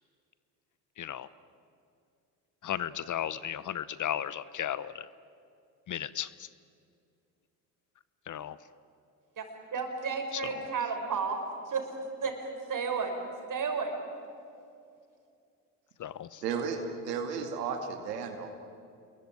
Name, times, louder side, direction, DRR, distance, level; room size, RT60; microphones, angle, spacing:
voice 1, 1.0-1.3 2.6-5.1 5.9-6.5 8.3-8.6 10.3-10.6 16.0-16.4, left 10 dB, 40° left, 17 dB, 0.9 m, -35 dB
voice 2, 9.7-11.4 11.7-11.8 12.2-13.1 13.5-13.9, right 5 dB, 40° right, 4 dB, 6.0 m, -32 dB
voice 3, 16.4-16.8 17.0-18.5, right 6 dB, 85° right, 5 dB, 2.4 m, -33 dB
28.0 x 22.0 x 9.2 m, 2.5 s
hypercardioid pair, 60°, 47 cm